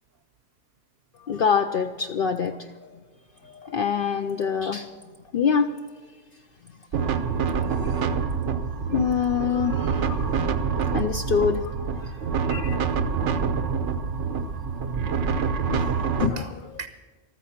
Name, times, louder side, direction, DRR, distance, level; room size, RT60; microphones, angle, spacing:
voice 1, 1.3-2.6 3.4-4.9 5.3-5.8 7.7-7.9 8.9-11.7 12.5-12.8 13.1-13.2 15.7-16.5, left 6 dB, 60° left, 6 dB, 0.7 m, -25 dB
sound 1, 6.9-16.3, right 6 dB, 90° right, 1.2 m, -26 dB
voice 2, 13.1-13.8 14.1-14.2 14.7-15.0 16.4-16.5 16.8-16.9, right 5 dB, 60° right, 10 dB, 0.9 m, -39 dB
14.5 x 13.5 x 5.8 m, 1.4 s
omnidirectional pair, 1.2 m